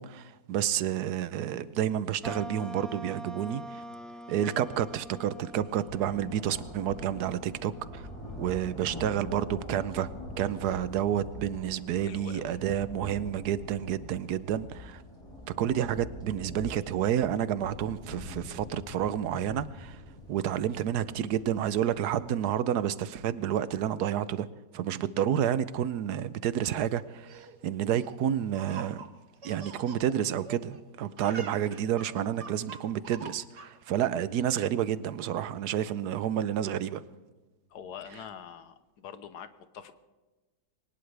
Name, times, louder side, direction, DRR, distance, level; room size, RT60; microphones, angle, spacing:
voice 1, 0.0-3.8 4.3-8.1 8.4-10.1 10.4-15.0 15.5-20.0 20.3-24.5 24.7-29.0 29.4-37.0, right 10 dB, 80° right, 1.3 m, -30 dB
sound 1, 2.2-8.9, equal, ahead, 0.5 m, -45 dB
sound 2, 4.7-4.8 5.1-22.3, left 1 dB, 20° left, 4.2 m, -44 dB
voice 2, 12.0-12.6 37.7-39.9, left 8 dB, 80° left, 1.5 m, -45 dB
Laughter, 27.0-30.8 31.1-33.9, right 4 dB, 45° right, 1.5 m, -46 dB
22.0 x 19.5 x 3.4 m
omnidirectional pair, 1.7 m